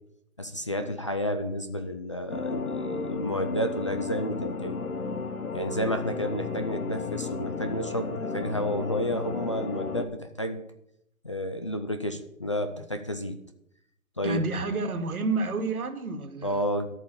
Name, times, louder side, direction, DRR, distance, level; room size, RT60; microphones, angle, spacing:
voice 1, 0.4-4.8 5.5-10.6 11.2-13.4 14.2-14.4 16.4-16.9, equal, 25° left, 0.4 m, -31 dB
sound 1, 2.3-10.0, left 4 dB, 90° left, 1.5 m, -33 dB
voice 2, 14.2-16.6, right 3 dB, 85° right, 2.3 m, -29 dB
13.5 x 5.6 x 8.7 m
hypercardioid pair, 160°, 42 cm